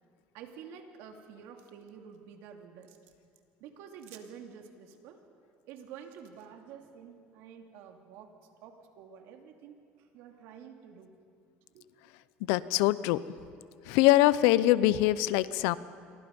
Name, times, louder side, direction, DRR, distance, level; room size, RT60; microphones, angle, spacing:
voice 1, 0.3-3.0 3.6-5.2 5.7-8.3 8.6-9.8 10.1-11.1 11.7-11.9, right 7 dB, 80° right, 4 dB, 2.7 m, -49 dB
voice 2, 12.5-13.2 13.9-15.8, left 15 dB, 85° left, 17 dB, 0.7 m, -23 dB
28.0 x 23.0 x 5.4 m, 2.3 s
cardioid pair, 110°, 4 cm